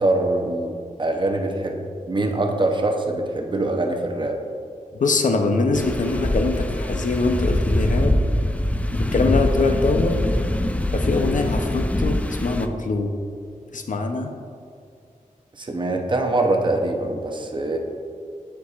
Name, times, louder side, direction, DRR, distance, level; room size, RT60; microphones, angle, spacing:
voice 1, 0.0-4.4 15.5-17.8, right 2 dB, 35° right, 3 dB, 0.7 m, -23 dB
voice 2, 4.9-8.2 8.9-10.3 10.9-13.1 13.7-14.3, left 3 dB, 65° left, 4 dB, 0.6 m, -23 dB
sound 1, 5.7-12.7, left 1 dB, 10° left, 0.3 m, -23 dB
9.6 x 4.7 x 2.4 m, 2.3 s
wide cardioid pair, 100°, 14 cm